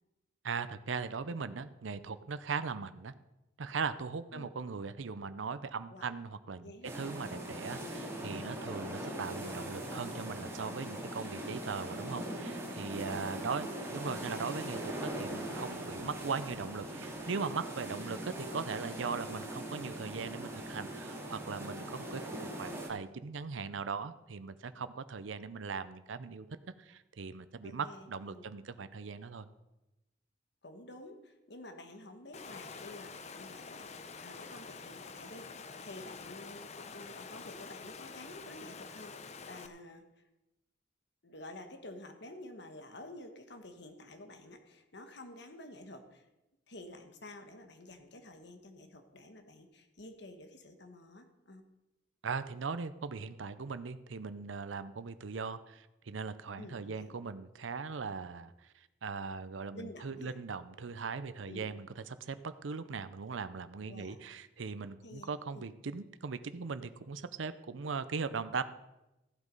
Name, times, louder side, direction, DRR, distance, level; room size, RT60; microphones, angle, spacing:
voice 1, 0.4-3.1 3.6-13.7 13.9-26.4 26.8-29.5 52.2-68.6, right 5 dB, 85° right, 12 dB, 0.6 m, -39 dB
voice 2, 6.6-6.9 13.0-13.9 27.6-28.5 30.6-35.5 35.8-40.2 41.2-46.3 46.7-51.6 56.5-57.2 59.7-60.4 61.5-61.7 63.8-64.2 65.0-65.7, left 1 dB, 60° left, 6 dB, 1.4 m, -50 dB
sound 1, 6.8-22.9, right 1 dB, 15° right, 2.3 m, -41 dB
Water, 32.3-39.7, left 4 dB, 35° left, 0.7 m, -47 dB
15.0 x 8.1 x 5.4 m, 0.96 s
head